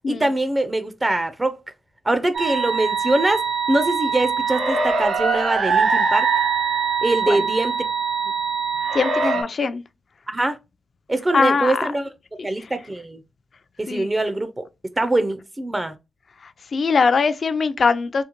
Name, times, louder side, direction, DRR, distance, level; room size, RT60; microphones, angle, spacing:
voice 1, 0.1-1.6 2.1-3.4 3.7-6.3 7.0-7.7 10.3-10.6 11.1-12.1 12.4-13.2 13.8-14.7 15.0-15.9, right 2 dB, 20° right, 0.3 m, -23 dB
sound 1, 2.3-9.4, right 5 dB, 80° right, 1.1 m, -22 dB
voice 2, 8.9-9.8 11.3-11.9 12.4-12.7 13.9-14.1 16.7-18.2, left 4 dB, 55° left, 0.3 m, -21 dB
3.8 x 2.1 x 2.8 m
cardioid pair, 90°, 0 cm